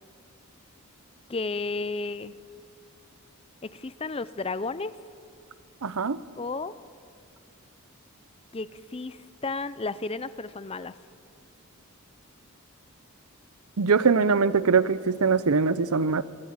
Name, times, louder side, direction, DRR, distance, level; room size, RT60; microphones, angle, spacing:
voice 1, 1.3-2.3 3.6-4.9 6.4-6.7 8.5-11.0, left 3 dB, 25° left, 15 dB, 0.5 m, -33 dB
voice 2, 5.8-6.2 13.8-16.2, right 5 dB, 80° right, 16 dB, 0.7 m, -22 dB
24.0 x 13.5 x 8.8 m, 2.3 s
head